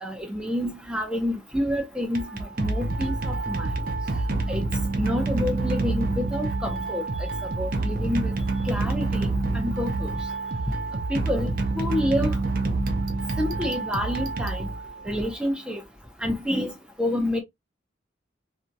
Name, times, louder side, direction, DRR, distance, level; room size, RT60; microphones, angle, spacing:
voice 1, 0.0-3.7 4.5-4.6 5.0-8.3 8.7-9.3 9.5-10.1 11.1-12.3 13.4-14.7 15.1-15.8 16.2-16.7 17.0-17.4, left 1 dB, 5° right, 0.7 m, -28 dB
sound 1, 2.0-15.2, right 2 dB, 50° right, 0.6 m, -27 dB
voice 2, 2.9-3.2 3.7-3.9 8.0-8.1 8.5-8.7 9.7-10.6 12.9-14.0 14.9-15.6, left 3 dB, 90° left, 0.9 m, -59 dB
2.8 x 2.6 x 2.2 m
head